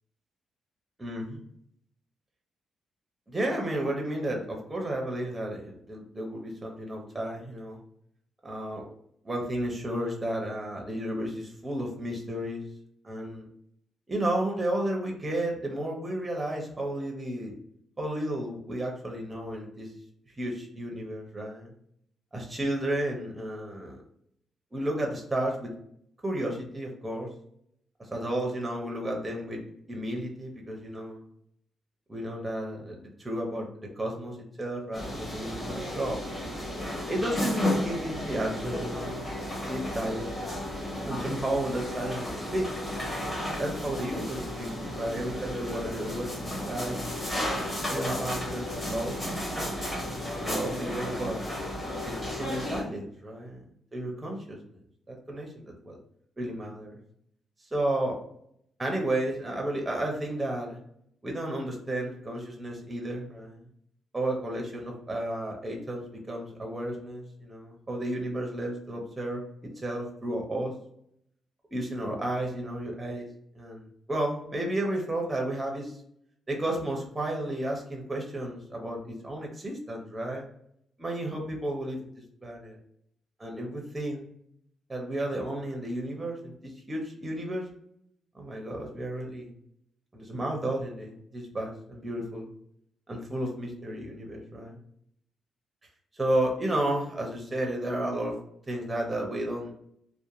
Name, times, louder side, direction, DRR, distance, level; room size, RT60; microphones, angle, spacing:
voice 1, 1.0-1.4 3.3-7.8 8.4-8.8 9.2-12.7 13.0-13.5 14.1-17.5 18.0-19.9 20.4-21.7 22.3-24.0 24.7-25.7 26.2-27.3 28.1-29.6 29.9-31.2 32.1-36.2 37.1-39.2 39.7-40.4 41.0-42.8 43.6-47.0 47.9-49.2 50.4-51.4 52.0-53.6 53.9-54.6 55.1-55.9 56.4-57.0 57.7-58.2 58.8-60.8 61.2-63.6 64.1-69.4 69.8-70.7 71.7-73.3 73.5-76.0 76.5-80.4 81.0-82.0 82.4-82.8 83.4-84.3 84.9-87.7 88.3-89.5 90.1-92.5 93.1-94.8 96.2-98.4 98.7-99.7, right 1 dB, 15° right, 0 dB, 0.5 m, -32 dB
sound 1, 34.9-52.8, left 1 dB, 20° left, 0.8 m, -33 dB
2.8 x 2.1 x 2.4 m, 0.70 s
cardioid pair, 160°, 0 cm